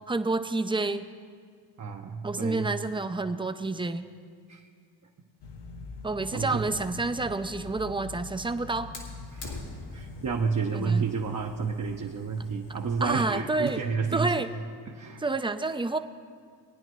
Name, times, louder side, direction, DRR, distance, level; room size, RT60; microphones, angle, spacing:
voice 1, 0.1-1.1 2.2-4.0 6.0-8.9 10.7-11.1 13.0-13.8 14.1-14.5 15.2-16.0, right 3 dB, 10° right, 9 dB, 0.5 m, -29 dB
voice 2, 1.8-2.7 4.5-4.6 6.3-6.6 9.3-9.6 9.9-14.3 14.9-15.2, right 5 dB, 40° right, 1 dB, 0.8 m, -30 dB
sound 1, 5.4-10.5, left 4 dB, 65° left, 0.8 m, -43 dB
Fire, 8.9-13.9, left 2 dB, 85° left, 2.3 m, -46 dB
20.0 x 9.8 x 3.1 m, 2.1 s
cardioid pair, 75°, 45 cm